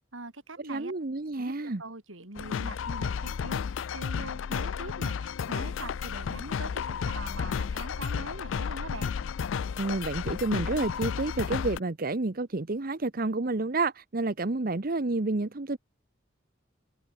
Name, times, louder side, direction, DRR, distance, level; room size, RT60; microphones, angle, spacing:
voice 1, 0.1-0.9 1.4-1.5 1.8-3.7 3.9-9.1, right 2 dB, 90° right, 4.6 m, -42 dB
voice 2, 0.7-1.8 9.8-15.8, right 2 dB, 50° right, 0.9 m, -29 dB
sound 1, 2.4-11.8, left 6 dB, 80° left, 0.4 m, -32 dB
head